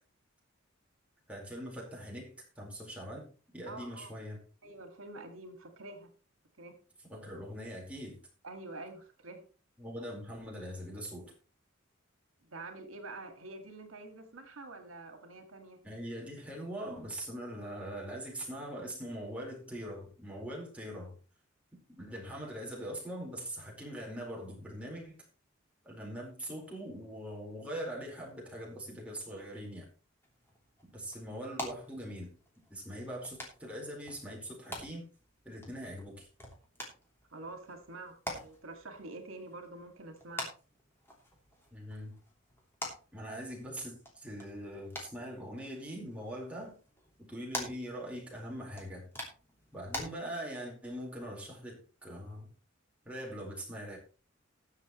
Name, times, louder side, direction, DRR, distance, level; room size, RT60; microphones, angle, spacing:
voice 1, 1.3-3.3 3.5-4.4 7.1-8.2 9.8-11.3 15.8-21.2 22.0-25.2 25.8-29.9 30.9-32.3 32.7-35.1 35.4-36.3 41.7-42.2 43.1-46.8 47.2-49.1 49.7-52.5 53.0-54.0, equal, 5° right, -3 dB, 4.4 m, -42 dB
voice 2, 3.7-4.1 4.6-6.1 6.6-6.7 8.4-9.4 12.5-15.8 37.3-40.5, right 2 dB, 90° right, 6 dB, 2.0 m, -47 dB
sound 1, 30.2-50.1, left 1 dB, 10° left, 3.2 m, -47 dB
20.5 x 7.0 x 3.1 m, 0.36 s
head